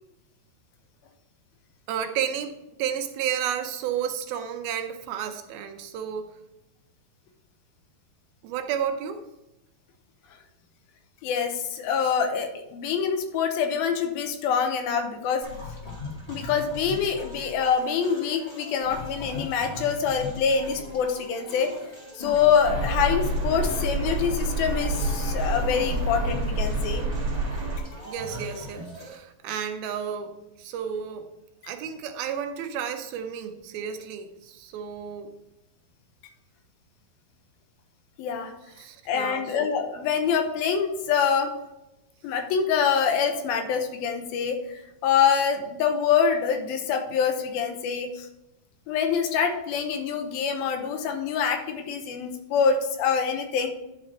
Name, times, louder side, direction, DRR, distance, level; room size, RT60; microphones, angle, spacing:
voice 1, 1.9-6.3 8.4-9.2 28.0-31.3 31.6-35.3 38.8-39.5, right 8 dB, 80° right, 7 dB, 2.5 m, -32 dB
voice 2, 11.2-15.5 16.3-21.7 22.2-27.1 38.2-38.5 39.1-41.5 42.2-44.6 45.0-48.3 48.9-53.7, left 7 dB, 75° left, 5 dB, 2.7 m, -25 dB
sound 1, 15.4-29.1, left 2 dB, 15° left, 1.2 m, -39 dB
sound 2, 22.6-27.8, right 2 dB, 45° right, 1.9 m, -27 dB
11.0 x 4.8 x 4.2 m, 0.91 s
omnidirectional pair, 4.4 m